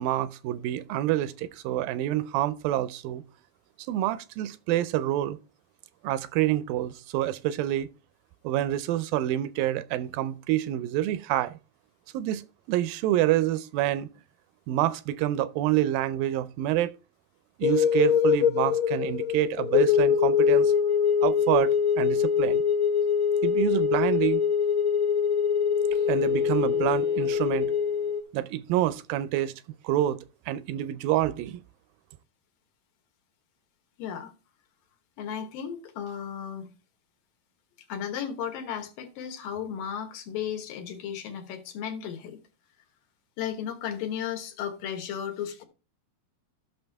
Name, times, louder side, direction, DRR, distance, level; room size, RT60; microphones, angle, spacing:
voice 1, 0.0-3.2 3.9-5.4 6.0-7.9 8.4-11.5 12.1-12.4 12.7-14.1 14.7-16.9 17.6-20.7 21.2-22.6 23.4-24.4 26.1-27.7 28.3-29.5 29.8-30.2 30.5-31.6, right 13 dB, 80° right, 2.3 m, -27 dB
sound 1, 17.6-28.2, left 7 dB, 55° left, 1.4 m, -23 dB
voice 2, 34.0-34.3 35.2-36.7 37.9-42.4 43.4-45.6, left 8 dB, 75° left, 2.9 m, -34 dB
14.5 x 6.2 x 3.4 m
omnidirectional pair, 4.1 m